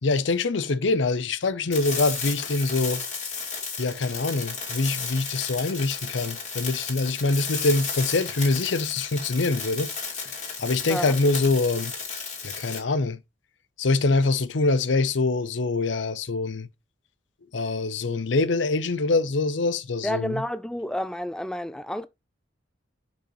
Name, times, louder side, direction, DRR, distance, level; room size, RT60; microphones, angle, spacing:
voice 1, 0.0-3.0 3.8-9.9 10.2-11.9 12.4-13.2 13.8-16.7 17.5-20.4, left 3 dB, 70° left, 0.7 m, -24 dB
sound 1, 1.7-12.8, left 5 dB, 40° left, 3.1 m, -33 dB
voice 2, 20.0-22.1, equal, 5° left, 0.3 m, -30 dB
6.2 x 5.8 x 3.1 m
head